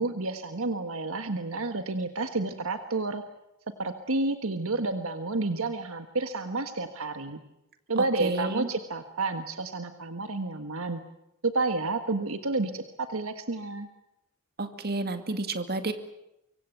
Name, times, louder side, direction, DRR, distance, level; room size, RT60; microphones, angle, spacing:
voice 1, 0.0-3.2 3.8-7.4 7.9-11.0 11.4-13.9, right 3 dB, 65° right, 8 dB, 1.5 m, -30 dB
voice 2, 8.2-8.7 14.6-15.9, right 2 dB, 45° right, 8 dB, 2.2 m, -30 dB
24.5 x 24.5 x 8.0 m, 0.86 s
head